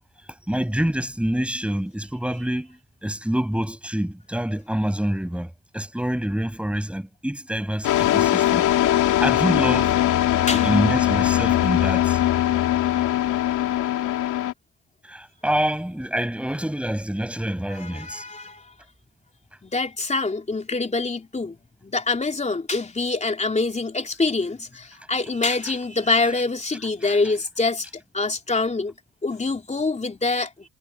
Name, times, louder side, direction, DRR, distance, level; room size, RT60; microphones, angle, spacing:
voice 1, 0.5-10.0 10.5-12.2 13.0-13.1 15.1-18.2 27.0-27.2, equal, 5° right, 7.8 m, -27 dB
sound 1, 7.8-14.5, left 13 dB, 85° left, 3.0 m, -21 dB
voice 2, 17.7-18.7 19.6-21.6 21.8-27.9 28.1-28.9 29.2-30.7, left 3 dB, 25° left, 3.6 m, -25 dB
cardioid pair, 90°, 30 cm